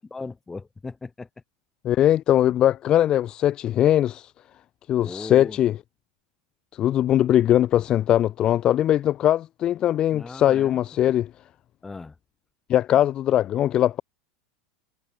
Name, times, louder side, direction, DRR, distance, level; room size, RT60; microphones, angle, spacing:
voice 1, 0.1-1.3 5.0-5.6 10.1-10.8 11.8-12.1, left 3 dB, 15° left, 5.1 m, -37 dB
voice 2, 1.8-4.3 4.9-5.8 6.8-11.3 12.7-14.0, left 11 dB, 40° left, 0.7 m, -20 dB
figure-of-eight pair, 80°, 2 cm